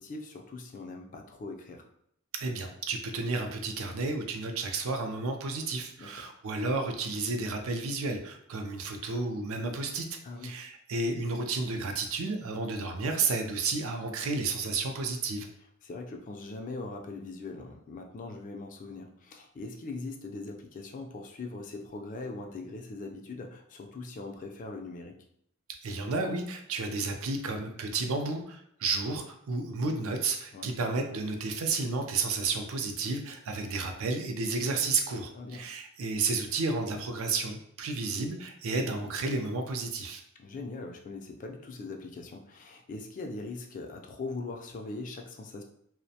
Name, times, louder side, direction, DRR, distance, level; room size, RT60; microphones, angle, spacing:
voice 1, 0.0-1.9 6.0-6.1 10.2-10.6 15.8-25.2 30.5-30.7 35.3-35.6 40.4-45.6, left 3 dB, 35° left, 3 dB, 0.3 m, -41 dB
voice 2, 2.4-10.1 10.4-15.5 25.8-40.2, right 3 dB, 65° right, 5 dB, 0.4 m, -32 dB
2.4 x 2.1 x 2.7 m, 0.70 s
head